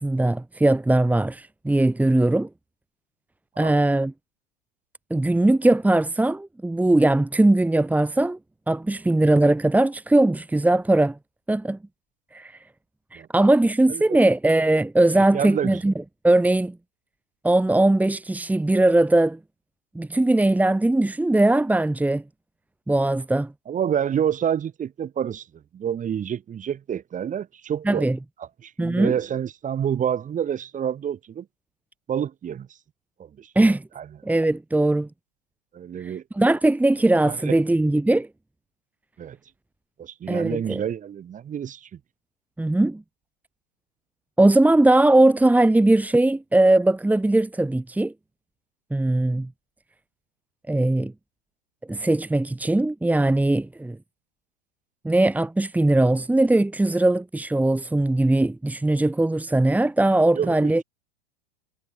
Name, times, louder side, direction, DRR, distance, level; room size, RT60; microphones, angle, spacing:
voice 1, 0.0-2.5 3.6-4.1 5.1-8.4 8.7-11.2 11.5-11.8 12.3-12.6 13.1-15.9 16.2-16.8 17.4-19.4 19.9-22.2 22.9-23.5 27.9-28.2 28.8-29.1 33.5-33.8 34.2-35.1 36.0-38.3 40.3-40.8 42.6-43.0 44.4-48.1 48.9-49.5 50.7-51.1 51.9-54.0 55.0-60.8, right 2 dB, 5° right, 4.6 m, -20 dB
voice 2, 13.9-14.2 15.2-15.8 23.7-28.1 28.4-31.5 32.1-32.7 33.2-33.5 34.0-34.1 35.7-36.2 37.3-37.6 39.2-39.4 40.0-42.0 60.3-60.8, right 9 dB, 20° right, 7.1 m, -28 dB
supercardioid pair, 135°, 34 cm